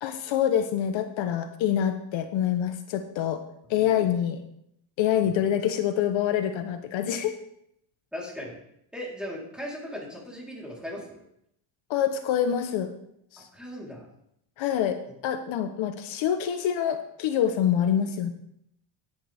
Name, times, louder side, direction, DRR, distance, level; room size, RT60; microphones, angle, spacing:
voice 1, 0.0-3.4 3.7-4.4 5.0-7.4 11.9-12.9 13.3-13.5 14.6-18.3, left 9 dB, 65° left, 8 dB, 1.1 m, -26 dB
voice 2, 3.8-4.1 5.2-5.3 8.1-8.6 8.9-11.2 13.4-14.1, equal, ahead, -4 dB, 3.8 m, -38 dB
17.5 x 10.5 x 3.5 m, 0.77 s
cardioid pair, 145°, 50 cm